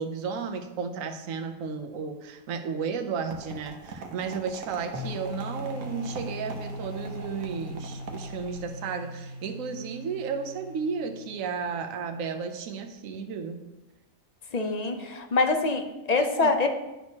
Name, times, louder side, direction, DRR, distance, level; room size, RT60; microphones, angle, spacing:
voice 1, 0.0-13.6 16.2-16.5, right 5 dB, 75° right, 6 dB, 1.1 m, -33 dB
sound 1, 3.3-8.7, right 3 dB, 90° right, 1.3 m, -43 dB
sound 2, 4.9-11.7, left 1 dB, 65° left, 2.4 m, -40 dB
voice 2, 14.5-16.7, left 3 dB, 45° left, 5 dB, 0.5 m, -25 dB
10.5 x 6.2 x 2.8 m, 1.0 s
omnidirectional pair, 1.4 m